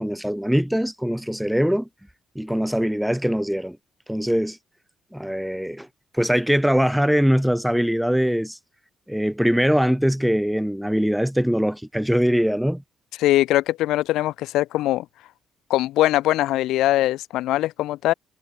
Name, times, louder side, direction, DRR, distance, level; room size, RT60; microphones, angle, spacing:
voice 1, 0.0-1.9 2.3-3.8 4.1-4.6 5.1-5.9 6.1-8.6 9.1-12.8, equal, ahead, 2.8 m, -22 dB
voice 2, 13.2-15.1 15.7-18.1, left 15 dB, 90° left, 0.8 m, -21 dB
cardioid pair, 90°, 0 cm